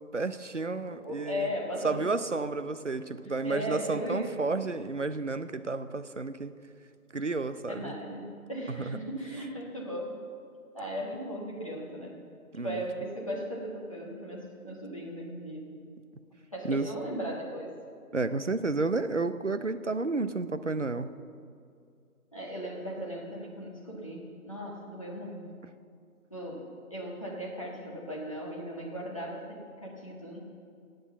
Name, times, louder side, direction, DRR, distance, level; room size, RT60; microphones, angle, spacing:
voice 1, 0.1-1.5 1.8-6.5 7.1-7.9 8.8-9.0 12.5-12.8 16.6-16.9 18.1-21.1, right 3 dB, 55° right, 12 dB, 0.7 m, -31 dB
voice 2, 0.8-2.1 3.4-4.6 7.7-10.2 10.7-12.2 12.6-15.8 16.5-17.7 22.3-25.5 26.3-30.4, equal, 20° left, -4 dB, 1.4 m, -37 dB
17.5 x 7.9 x 7.0 m, 2.4 s
figure-of-eight pair, 170°, 44 cm